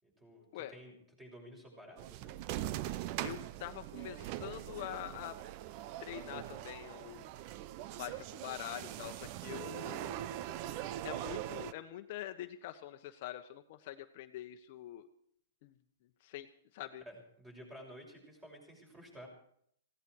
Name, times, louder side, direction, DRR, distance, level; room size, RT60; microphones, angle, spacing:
voice 1, 0.0-2.4 17.0-19.3, equal, 10° right, 1 dB, 6.3 m, -53 dB
sound 1, 2.0-11.7, right 13 dB, 40° right, 0.7 m, -42 dB
voice 2, 3.2-5.4 6.0-7.3 8.0-10.2 11.0-15.1 15.6-15.7 16.2-16.5 16.7-17.0, left 13 dB, 50° left, 7 dB, 1.1 m, -45 dB
18.5 x 16.5 x 4.7 m, 0.67 s
hypercardioid pair, 145°, 0 cm